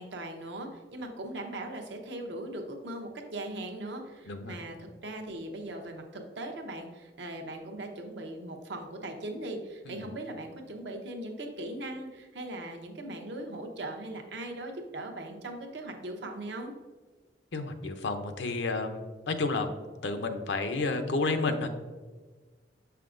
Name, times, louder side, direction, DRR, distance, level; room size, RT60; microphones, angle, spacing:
voice 1, 0.0-16.7, right 1 dB, 75° right, 3 dB, 0.9 m, -39 dB
voice 2, 4.3-4.6 9.9-10.1 17.5-19.8 20.0-21.7, left 3 dB, 85° left, 7 dB, 0.6 m, -31 dB
6.9 x 5.6 x 2.5 m, 1.3 s
head